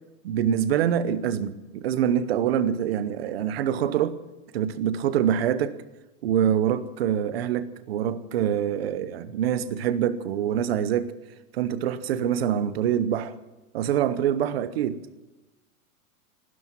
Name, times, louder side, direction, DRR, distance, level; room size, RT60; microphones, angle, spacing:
voice 1, 0.2-4.2 4.5-5.7 6.2-11.1 11.5-13.3 13.7-15.0, right 9 dB, 40° right, 0.9 m, -25 dB
18.0 x 12.5 x 6.0 m
supercardioid pair, 180°, 45 cm